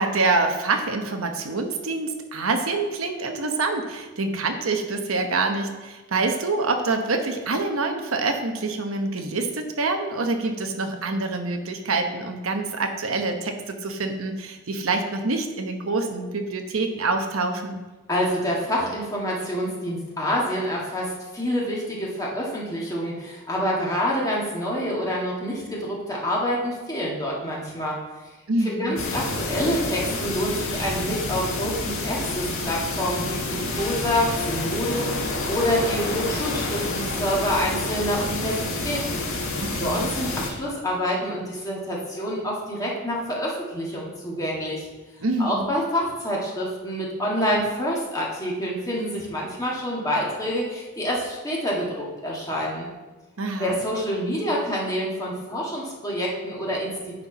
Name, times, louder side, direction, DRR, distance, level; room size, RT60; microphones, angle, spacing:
voice 1, 0.0-17.8 28.5-28.9 39.6-40.1 45.2-45.7 53.4-53.7, right 3 dB, 90° right, 5 dB, 1.0 m, -26 dB
voice 2, 18.1-28.0 28.6-39.2 39.5-44.9 45.4-52.9 53.6-56.9, equal, 15° left, -4 dB, 1.8 m, -27 dB
sound 1, 29.0-40.5, left 2 dB, 85° left, 1.6 m, -28 dB
9.6 x 4.5 x 5.5 m, 1.2 s
head